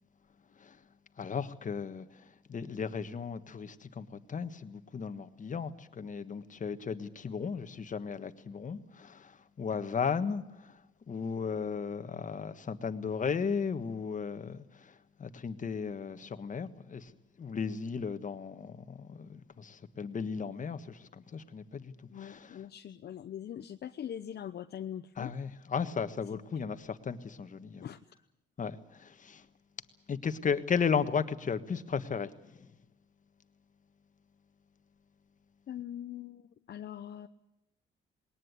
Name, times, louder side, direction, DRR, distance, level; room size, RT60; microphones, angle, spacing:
voice 1, 1.2-2.1 2.5-10.8 11.1-14.9 15.2-17.1 17.4-22.6 25.2-27.9 28.6-29.4 30.1-32.3, left 6 dB, 40° left, 1.5 m, -35 dB
voice 2, 22.1-25.3 26.3-26.4 27.8-28.0 35.7-37.3, left 10 dB, 55° left, 0.8 m, -42 dB
20.0 x 19.0 x 9.6 m
cardioid pair, 90°, 20 cm